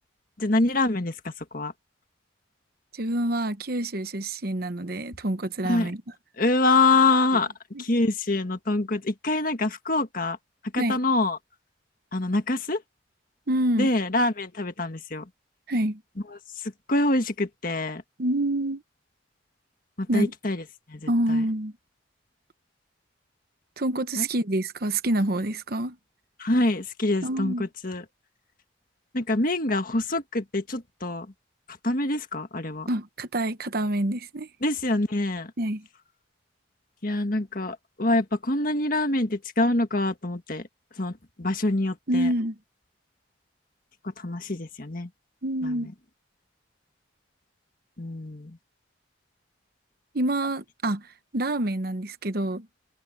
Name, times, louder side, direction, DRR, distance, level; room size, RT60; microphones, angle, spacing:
voice 1, 0.4-1.7 5.6-5.9 6.4-7.5 7.8-10.4 10.7-11.4 12.1-12.8 13.8-15.3 16.3-18.0 20.0-21.5 24.2-24.3 26.4-28.0 29.1-31.3 31.8-32.9 34.6-35.5 37.0-40.7 41.0-42.3 44.2-45.1 45.6-45.9 48.0-48.6, left 2 dB, 45° left, 1.7 m, -25 dB
voice 2, 2.9-6.0 7.7-7.8 10.8-11.0 13.5-13.9 15.7-16.0 18.2-18.8 20.1-20.3 21.1-21.7 23.8-26.0 27.2-27.6 32.9-34.5 35.6-35.9 42.1-42.5 45.4-45.9 50.1-51.1 51.3-52.7, right 1 dB, 50° right, 1.0 m, -27 dB
head